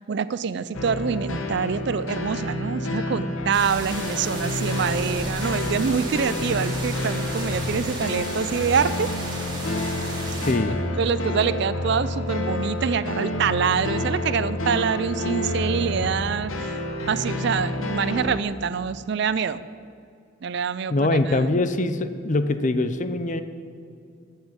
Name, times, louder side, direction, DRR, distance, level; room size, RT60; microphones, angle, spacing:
voice 1, 0.0-9.1 11.0-16.8 17.1-19.6 20.4-21.5, right 6 dB, 55° right, 16 dB, 0.4 m, -25 dB
sound 1, 0.7-18.4, left 1 dB, 85° left, 1.3 m, -29 dB
sound 2, 3.5-10.5, right 2 dB, 25° right, 3.3 m, -34 dB
voice 2, 10.4-10.8 20.9-23.4, left 2 dB, 40° left, 11 dB, 0.6 m, -23 dB
9.9 x 7.3 x 8.9 m, 2.4 s
head